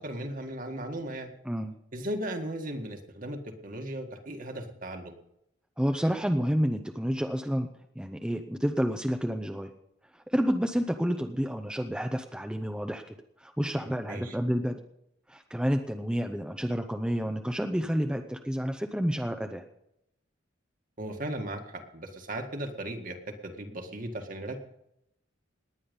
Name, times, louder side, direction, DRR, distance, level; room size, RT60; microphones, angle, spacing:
voice 1, 0.0-1.3 1.9-5.1 13.8-14.4 21.0-24.6, right 1 dB, 45° right, 4 dB, 1.9 m, -37 dB
voice 2, 1.4-1.8 5.8-7.7 8.0-9.7 10.1-13.0 13.4-14.8 15.3-19.6, equal, 5° right, 5 dB, 0.7 m, -29 dB
19.0 x 9.9 x 5.4 m, 0.80 s
head